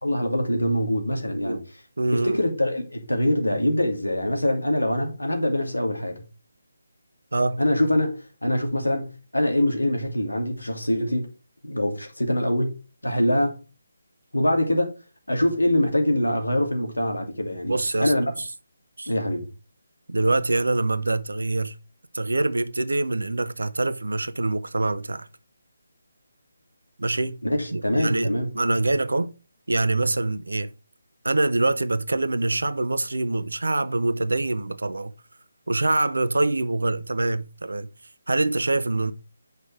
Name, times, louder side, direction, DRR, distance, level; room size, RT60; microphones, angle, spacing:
voice 1, 0.0-1.6 2.1-6.2 7.6-11.3 11.6-12.8 13.0-13.6 14.3-14.9 15.3-17.7 18.0-18.3 19.1-19.5 27.4-28.5, left 1 dB, 75° left, 2.6 m, -24 dB
voice 2, 2.0-2.4 7.3-7.6 17.6-18.1 18.4-18.5 19.0-19.1 20.1-21.7 22.1-25.3 27.0-27.4 27.7-29.3 29.7-30.7 31.2-35.1 35.7-37.9 38.3-39.1, right 2 dB, 65° right, 0.8 m, -24 dB
8.4 x 5.5 x 4.7 m
figure-of-eight pair, 150°, 0 cm